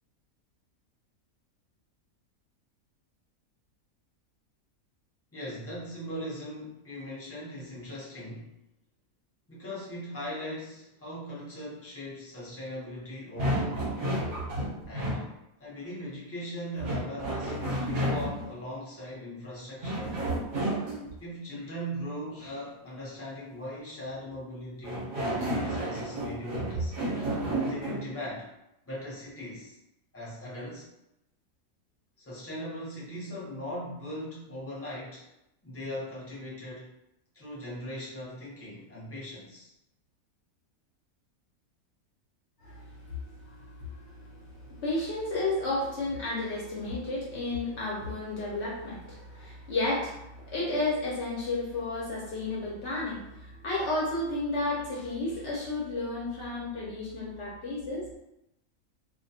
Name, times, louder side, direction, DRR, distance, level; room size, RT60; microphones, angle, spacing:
voice 1, 5.3-8.5 9.5-13.9 14.9-15.3 15.6-20.3 21.2-27.0 27.7-28.5 28.9-29.8 30.1-30.9 32.2-35.3 35.6-36.9 37.3-39.7, equal, 20° left, -7 dB, 0.4 m, -39 dB
sound 1, 13.4-15.3 16.8-18.5 19.8-21.1 24.8-28.1, right 1 dB, 50° right, 0.7 m, -31 dB
voice 2, 43.5-58.2, left 2 dB, 60° left, -5 dB, 0.8 m, -32 dB
2.3 x 2.2 x 2.6 m, 0.86 s
omnidirectional pair, 1.5 m